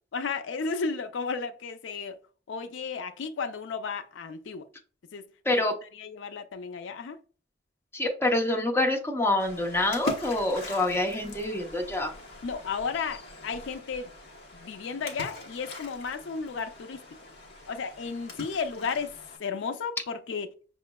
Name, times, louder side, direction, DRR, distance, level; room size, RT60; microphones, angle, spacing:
voice 1, 0.1-2.1 2.5-4.7 5.1-5.3 5.5-5.6 6.0-7.2 12.4-14.1 14.5-17.0 17.7-19.1 19.4-20.5, left 5 dB, 90° left, 0.4 m, -33 dB
voice 2, 5.4-5.8 7.9-12.1, left 2 dB, 15° left, 0.7 m, -26 dB
Splash splatter, 9.4-19.4, left 2 dB, 60° left, 1.0 m, -42 dB
5.7 x 3.1 x 2.2 m
head